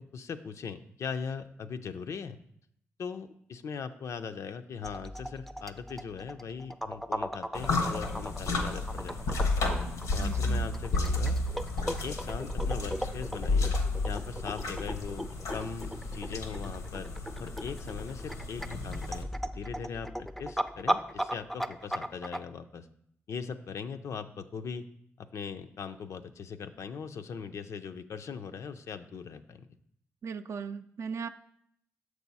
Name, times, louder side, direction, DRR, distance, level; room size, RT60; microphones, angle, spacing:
voice 1, 0.0-2.4 3.0-9.4 10.1-11.4 11.9-13.7 14.0-17.1 17.4-19.3 19.5-22.9 23.3-24.8 25.2-29.7, left 6 dB, 65° left, 9 dB, 0.4 m, -40 dB
sound 1, 4.8-22.4, equal, ahead, 0.4 m, -36 dB
sound 2, 7.5-19.2, left 2 dB, 80° left, 0.8 m, -32 dB
voice 2, 10.2-10.6 30.2-31.3, right 6 dB, 60° right, 10 dB, 0.4 m, -38 dB
6.6 x 4.7 x 4.1 m, 0.71 s
supercardioid pair, 45°, 6 cm